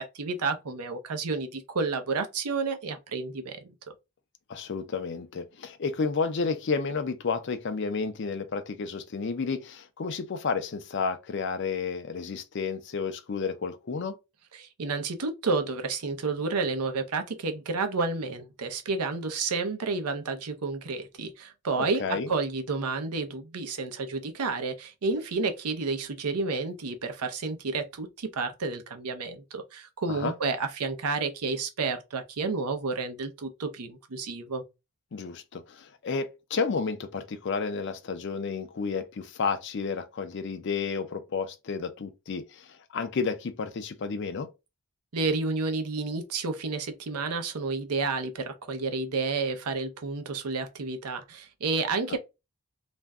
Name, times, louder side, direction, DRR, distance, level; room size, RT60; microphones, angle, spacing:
voice 1, 0.0-3.7 14.5-34.6 45.1-52.2, right 4 dB, 90° right, 0.6 m, -30 dB
voice 2, 4.5-14.2 22.0-22.3 30.1-30.3 35.1-44.5, left 5 dB, 50° left, 0.4 m, -31 dB
2.5 x 2.1 x 3.4 m
head